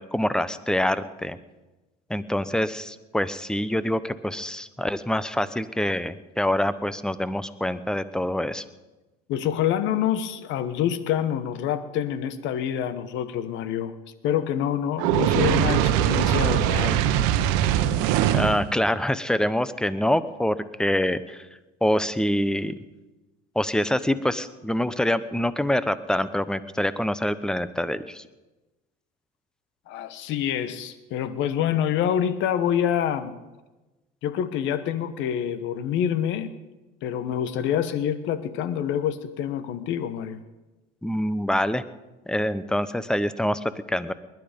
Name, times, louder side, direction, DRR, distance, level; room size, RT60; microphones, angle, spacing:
voice 1, 0.0-1.4 2.1-8.6 18.3-21.5 21.8-22.7 23.6-28.2 41.0-41.8 42.3-44.1, left 1 dB, 5° left, 15 dB, 0.8 m, -25 dB
voice 2, 9.3-13.9 14.2-17.1 29.9-33.4 34.2-36.5 37.0-40.4, left 9 dB, 65° left, 13 dB, 1.3 m, -26 dB
Fire, 15.0-18.7, right 11 dB, 75° right, 1.1 m, -21 dB
20.5 x 11.0 x 5.2 m, 1.1 s
supercardioid pair, 95°, 21 cm